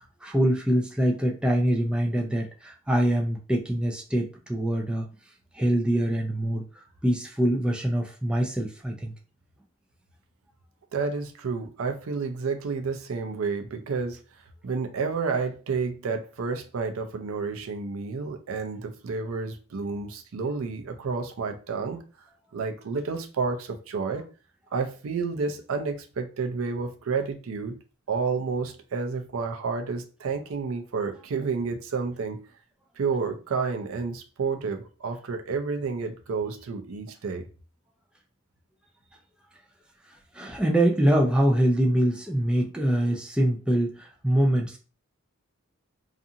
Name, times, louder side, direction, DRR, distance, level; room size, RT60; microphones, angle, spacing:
voice 1, 0.2-5.1 5.5-6.6 7.0-9.1 40.3-44.8, right 1 dB, 5° right, 0.3 m, -24 dB
voice 2, 10.9-14.2 14.6-22.0 22.5-24.3 24.7-27.8 28.1-32.4 33.0-37.5, right 4 dB, 75° right, 0.4 m, -30 dB
2.5 x 2.4 x 2.7 m
head